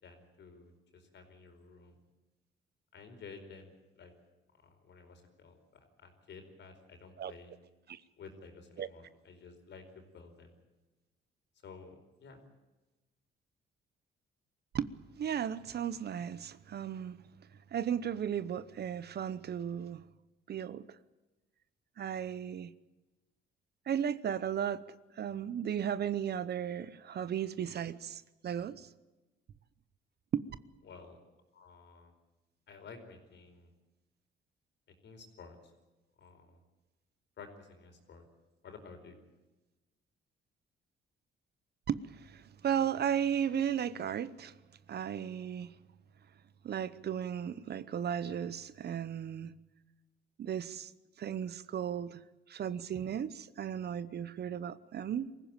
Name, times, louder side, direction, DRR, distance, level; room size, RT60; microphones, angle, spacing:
voice 1, 0.0-1.9 2.9-4.1 4.6-7.5 8.2-10.5 11.6-12.4 30.8-31.2 31.5-32.1 32.7-33.7 35.0-35.6 36.2-36.6 37.4-38.3 38.6-39.2, left 4 dB, 65° left, 4.7 m, -52 dB
voice 2, 15.2-17.2 17.7-20.0 20.5-20.8 22.0-22.7 23.9-28.9 30.3-30.4 41.9-44.5 44.9-45.7 46.6-49.5 50.4-50.9 51.2-52.2 52.5-55.3, right 9 dB, 55° right, 0.9 m, -35 dB
23.5 x 15.5 x 9.1 m
cardioid pair, 90°, 20 cm